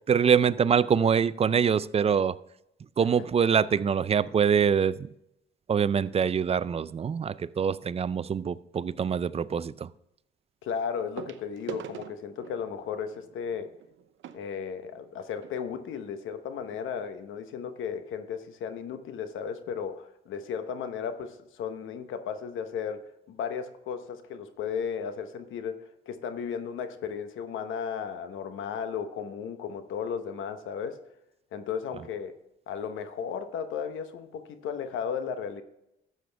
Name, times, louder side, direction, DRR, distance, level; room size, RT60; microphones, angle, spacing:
voice 1, 0.1-2.4 3.0-5.1 5.7-9.9, right 7 dB, 30° right, 0.4 m, -24 dB
voice 2, 10.6-13.7 14.3-23.0 23.3-31.0 31.5-32.4 32.7-35.6, left 7 dB, 80° left, 1.0 m, -35 dB
sound 1, 11.2-15.6 16.3-16.4 16.6-16.8 17.4-17.5, right 9 dB, 75° right, 0.7 m, -45 dB
12.0 x 7.8 x 3.4 m
cardioid pair, 90°, 20 cm